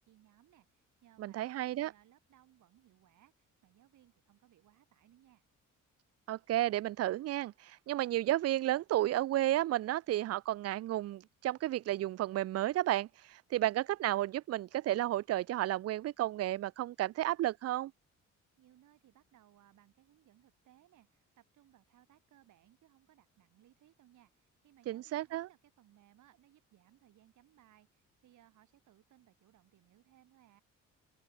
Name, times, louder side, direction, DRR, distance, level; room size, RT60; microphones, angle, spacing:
voice 1, 0.0-5.4 18.6-30.6, right 13 dB, 75° right, 3.8 m, -65 dB
voice 2, 1.2-1.9 6.3-17.9 24.9-25.5, right 14 dB, 55° right, 0.4 m, -32 dB
open air
cardioid pair, 90°, 30 cm